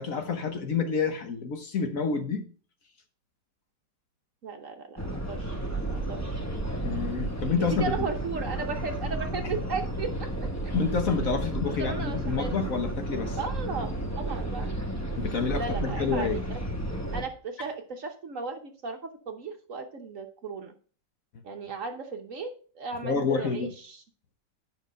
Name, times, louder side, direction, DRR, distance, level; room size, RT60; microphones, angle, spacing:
voice 1, 0.0-2.4 6.8-8.1 9.5-9.6 10.7-13.4 15.2-16.4 23.0-23.7, left 5 dB, 55° left, 1.3 m, -28 dB
voice 2, 4.4-5.6 5.9-6.4 7.6-10.7 11.7-12.6 13.4-14.7 15.5-16.6 17.1-20.7 21.4-24.0, right 5 dB, 55° right, 1.1 m, -36 dB
sound 1, 5.0-17.2, right 1 dB, 10° left, 0.8 m, -32 dB
9.8 x 5.5 x 5.2 m
omnidirectional pair, 1.9 m